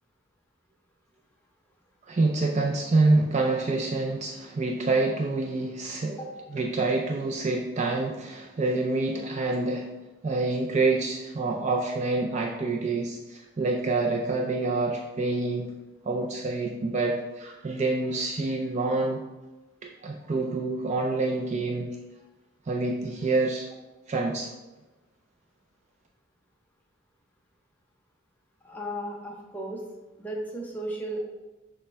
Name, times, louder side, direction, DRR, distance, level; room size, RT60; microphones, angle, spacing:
voice 1, 2.1-6.2 6.5-9.9 10.2-15.7 16.1-19.2 19.8-22.0 22.7-23.7 24.1-24.5, right 3 dB, 30° right, 0 dB, 0.3 m, -27 dB
voice 2, 28.6-29.8 30.2-31.2, right 1 dB, 10° left, -2 dB, 0.6 m, -35 dB
6.5 x 2.2 x 3.3 m, 1.1 s
head